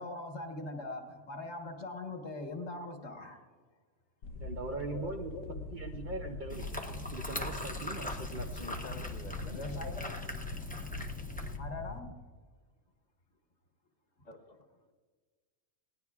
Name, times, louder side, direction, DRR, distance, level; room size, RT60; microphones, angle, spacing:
voice 1, 0.0-3.4 4.9-5.6 9.5-10.2 11.6-12.1, left 2 dB, 60° left, 3 dB, 1.6 m, -42 dB
sound 1, 4.2-12.0, left 3 dB, 80° left, 1.2 m, -42 dB
voice 2, 4.4-6.8 7.1-8.6, right 3 dB, 50° right, 4 dB, 0.6 m, -41 dB
sound 2, 6.5-11.6, left 1 dB, 10° left, 0.6 m, -42 dB
voice 3, 8.6-9.6 14.2-14.6, left 2 dB, 40° left, 5 dB, 0.8 m, -48 dB
19.5 x 17.5 x 2.4 m, 1.5 s
omnidirectional pair, 1.3 m